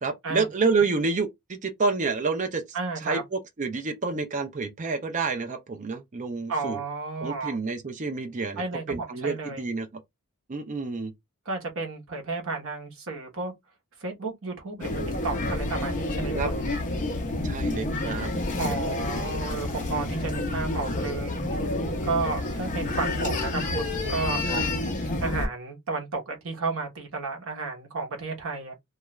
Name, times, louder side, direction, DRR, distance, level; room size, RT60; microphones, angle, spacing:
voice 1, 0.0-2.6 3.0-6.8 7.2-9.9 10.5-11.1 16.3-16.5 17.4-18.3 24.5-24.6, right 4 dB, 35° right, 0.5 m, -28 dB
voice 2, 2.7-3.2 6.5-7.6 8.6-9.7 11.4-13.5 14.0-16.7 18.6-21.4 22.0-24.4 25.2-28.7, right 3 dB, 60° right, 0.9 m, -32 dB
sound 1, 14.8-25.5, left 2 dB, 35° left, 0.6 m, -29 dB
2.3 x 2.3 x 3.0 m
head